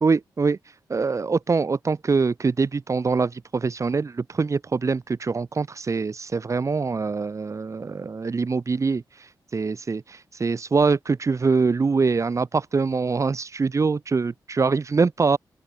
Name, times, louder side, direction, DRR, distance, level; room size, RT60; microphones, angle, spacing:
voice 1, 0.0-0.6 0.9-9.0 9.5-15.4, right 4 dB, 45° right, 2.6 m, -24 dB
open air
cardioid pair, 85°, 7 cm